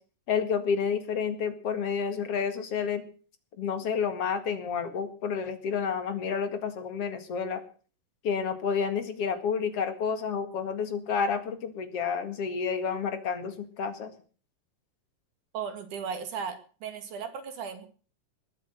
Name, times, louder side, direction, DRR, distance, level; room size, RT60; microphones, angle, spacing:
voice 1, 0.3-3.0 3.6-7.6 8.2-14.1, left 6 dB, 50° left, 9 dB, 2.5 m, -30 dB
voice 2, 15.5-17.9, right 6 dB, 65° right, 8 dB, 3.5 m, -36 dB
20.5 x 8.4 x 7.9 m, 0.42 s
omnidirectional pair, 4.0 m